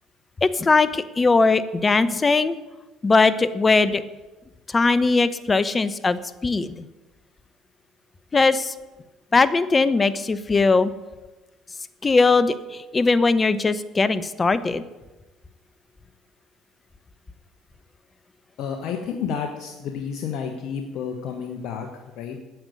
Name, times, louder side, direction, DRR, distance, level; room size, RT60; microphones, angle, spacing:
voice 1, 0.4-2.6 3.0-4.0 4.7-6.8 8.3-8.7 9.3-10.9 12.0-12.5 12.9-14.8, left 3 dB, 25° left, 14 dB, 0.9 m, -19 dB
voice 2, 18.6-21.9 22.1-22.4, left 7 dB, 65° left, 4 dB, 1.3 m, -30 dB
9.5 x 8.0 x 9.5 m, 1.1 s
hypercardioid pair, 70°, 0 cm